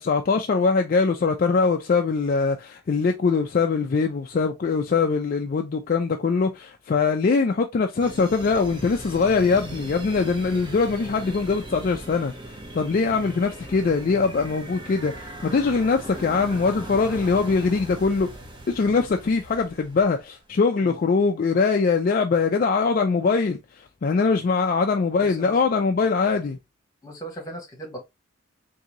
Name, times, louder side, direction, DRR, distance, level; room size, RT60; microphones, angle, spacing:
voice 1, 0.0-12.3 12.7-18.3 18.7-26.6, left 4 dB, 45° left, 0.3 m, -22 dB
sound 1, 8.0-20.3, right 1 dB, 25° right, 0.8 m, -39 dB
voice 2, 25.2-25.6 27.0-28.0, right 1 dB, 20° left, 1.2 m, -39 dB
3.7 x 2.7 x 2.9 m
head